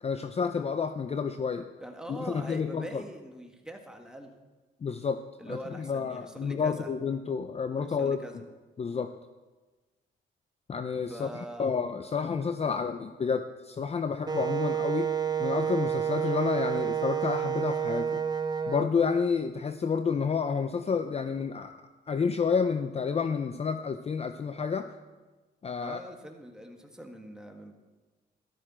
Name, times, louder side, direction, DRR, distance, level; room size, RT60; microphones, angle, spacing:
voice 1, 0.0-1.7 2.1-3.0 4.8-8.2 8.8-9.1 10.7-15.1 15.4-18.2 18.7-21.8 22.1-25.0 25.6-26.0, left 5 dB, 30° left, 9 dB, 0.6 m, -30 dB
voice 2, 1.8-4.3 5.4-6.9 7.8-8.4 11.1-11.8 25.8-27.7, right 1 dB, 5° right, 3 dB, 1.8 m, -43 dB
Wind instrument woodwind instrument, 14.3-18.9, right 8 dB, 20° right, 0.7 m, -29 dB
13.5 x 12.5 x 4.4 m, 1.3 s
cardioid pair, 90°, 20 cm